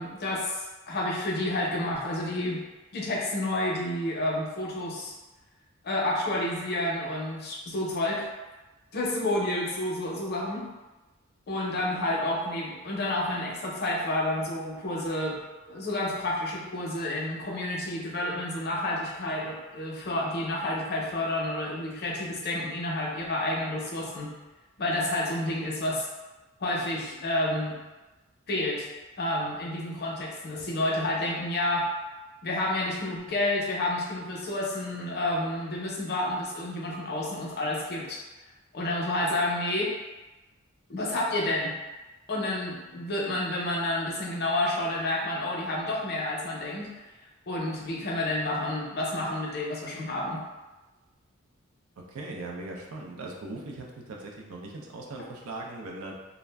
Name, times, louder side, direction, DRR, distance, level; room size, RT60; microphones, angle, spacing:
voice 1, 0.0-2.6 2.9-5.1 5.8-8.2 8.9-10.7 11.5-15.4 15.7-24.3 24.8-26.1 26.6-27.8 28.5-28.9 29.2-31.9 32.4-38.2 38.7-39.9 40.9-41.8 42.3-46.9 47.5-50.4, left 1 dB, 50° left, -2 dB, 0.6 m, -30 dB
voice 2, 52.1-56.1, right 2 dB, 80° right, -1 dB, 0.5 m, -39 dB
2.4 x 2.0 x 3.3 m, 1.2 s
head